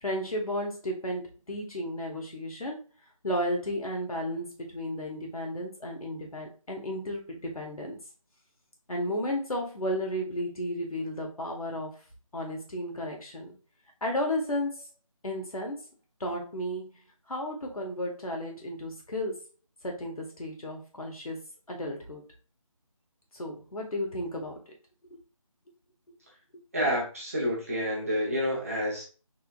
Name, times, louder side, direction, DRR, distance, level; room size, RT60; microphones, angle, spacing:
voice 1, 0.0-2.8 3.2-7.9 8.9-11.9 12.3-13.5 14.0-14.9 15.2-15.8 16.2-16.9 17.3-19.4 19.8-21.4 21.7-22.2 23.3-24.6, left 1 dB, 90° left, 0 dB, 1.8 m, -33 dB
voice 2, 26.7-29.0, equal, 25° right, -4 dB, 1.1 m, -29 dB
4.0 x 3.8 x 2.5 m, 0.35 s
figure-of-eight pair, 175°, 18 cm